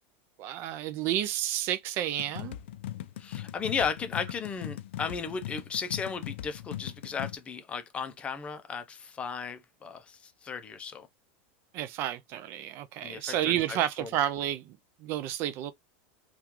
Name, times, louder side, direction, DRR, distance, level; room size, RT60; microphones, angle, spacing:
voice 1, 0.4-2.6 11.7-15.7, right 12 dB, 40° right, 0.3 m, -31 dB
sound 1, 2.2-7.3, left 13 dB, 85° left, 0.4 m, -39 dB
voice 2, 3.2-11.1 13.0-14.1, left 6 dB, 20° left, 0.5 m, -35 dB
3.6 x 2.3 x 2.9 m
supercardioid pair, 155°, 6 cm